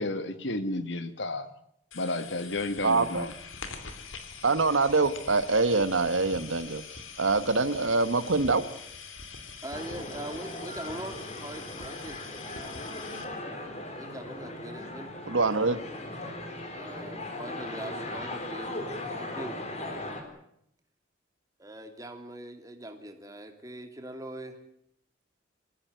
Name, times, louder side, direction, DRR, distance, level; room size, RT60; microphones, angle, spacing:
voice 1, 0.0-1.5 1.9-3.3, left 2 dB, 65° left, 11 dB, 1.9 m, -32 dB
sound 1, 1.9-13.2, left 5 dB, 85° left, 3.1 m, -44 dB
voice 2, 2.8-3.3 4.4-6.8 7.2-8.6 15.3-15.8, right 3 dB, 80° right, 13 dB, 1.3 m, -24 dB
voice 3, 9.6-12.2 13.9-15.1 16.7-19.6 21.6-24.6, right 1 dB, 15° right, 6 dB, 2.7 m, -42 dB
sound 2, 9.7-20.2, left 1 dB, 35° left, 3.9 m, -38 dB
24.5 x 15.5 x 9.2 m, 0.75 s
head